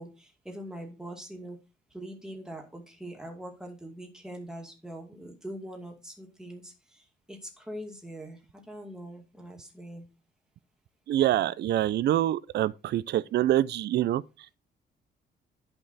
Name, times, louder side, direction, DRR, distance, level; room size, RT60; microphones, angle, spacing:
voice 1, 0.0-1.6 1.9-8.4 8.7-10.1, right 1 dB, 5° right, 2.3 m, -42 dB
voice 2, 11.1-14.2, right 13 dB, 60° right, 0.4 m, -25 dB
11.0 x 5.4 x 4.1 m
cardioid pair, 140°, 20 cm